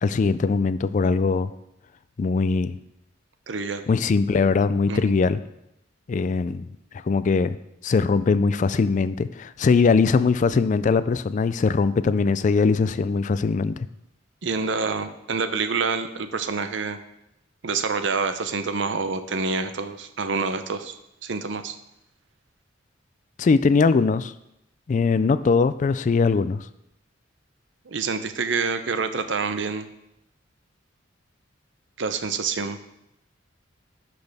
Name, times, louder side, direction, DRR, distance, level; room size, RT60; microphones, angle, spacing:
voice 1, 0.0-1.5 2.2-2.8 3.9-5.4 6.1-6.7 7.0-7.6 7.8-13.9 23.4-24.3 24.9-26.7, left 4 dB, 40° left, 14 dB, 0.3 m, -21 dB
voice 2, 3.5-3.9 4.9-5.1 14.4-17.0 17.6-20.9 21.2-21.7 27.9-29.9 32.0-32.8, right 4 dB, 65° right, 9 dB, 0.7 m, -27 dB
10.5 x 6.1 x 3.5 m, 0.84 s
head